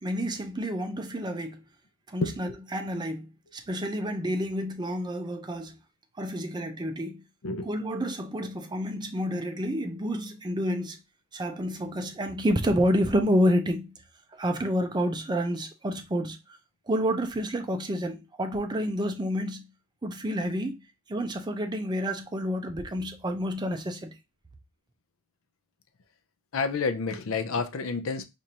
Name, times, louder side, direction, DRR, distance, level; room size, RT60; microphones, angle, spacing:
voice 1, 0.0-1.6 2.1-5.8 6.2-7.2 7.6-11.0 11.3-13.9 14.3-16.4 16.9-19.7 20.0-20.8 21.1-24.1, equal, 20° right, 0.5 m, -29 dB
voice 2, 26.5-28.2, left 4 dB, 75° left, 0.5 m, -29 dB
4.6 x 2.6 x 2.8 m
head